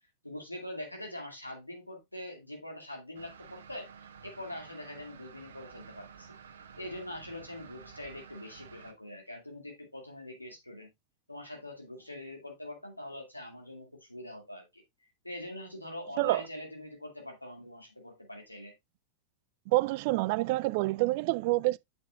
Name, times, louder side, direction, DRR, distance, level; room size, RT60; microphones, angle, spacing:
voice 1, 0.2-6.4 6.8-10.9 11.3-14.8 15.2-18.7, left 1 dB, 85° left, 2.3 m, -43 dB
sound 1, 3.1-8.9, right 6 dB, 65° right, 1.0 m, -51 dB
voice 2, 19.7-21.8, right 20 dB, 50° right, 0.3 m, -27 dB
7.9 x 7.3 x 2.4 m
figure-of-eight pair, 90°, 0 cm